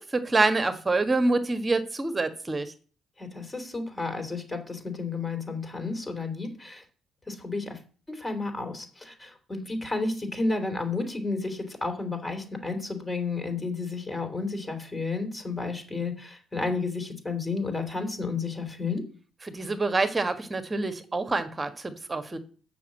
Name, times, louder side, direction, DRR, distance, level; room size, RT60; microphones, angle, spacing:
voice 1, 0.0-2.7 19.4-22.4, right 3 dB, 25° right, 9 dB, 1.5 m, -26 dB
voice 2, 3.2-6.8 7.3-7.8 8.1-19.0, left 3 dB, 20° left, 6 dB, 3.2 m, -32 dB
7.1 x 6.1 x 7.5 m, 0.40 s
supercardioid pair, 60°, 0 cm